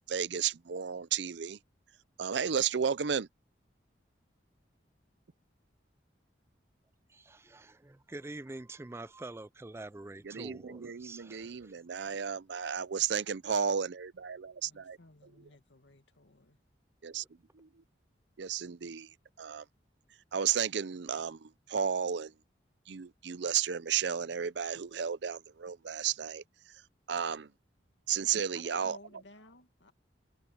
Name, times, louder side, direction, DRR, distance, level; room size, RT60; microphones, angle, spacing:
voice 1, 0.0-1.6 2.2-3.3 10.2-15.0 17.0-17.2 18.4-19.1 19.4-19.6 20.3-22.3 22.9-26.4 27.1-27.5 28.1-29.0, right 7 dB, 70° right, 0.5 m, -33 dB
voice 2, 7.1-11.8, right 2 dB, 15° right, 0.3 m, -46 dB
voice 3, 14.6-16.6 28.5-29.9, left 2 dB, 85° left, 2.2 m, -57 dB
head